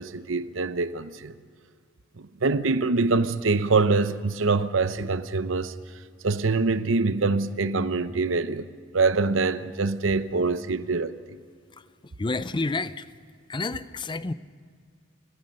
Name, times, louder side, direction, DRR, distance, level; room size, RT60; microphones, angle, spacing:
voice 1, 0.0-1.3 2.2-5.7 6.2-8.7 8.9-11.4, right 3 dB, 75° right, 0.8 m, -24 dB
voice 2, 12.2-13.1 13.5-14.3, left 3 dB, 25° left, 0.5 m, -29 dB
29.5 x 15.0 x 6.6 m
head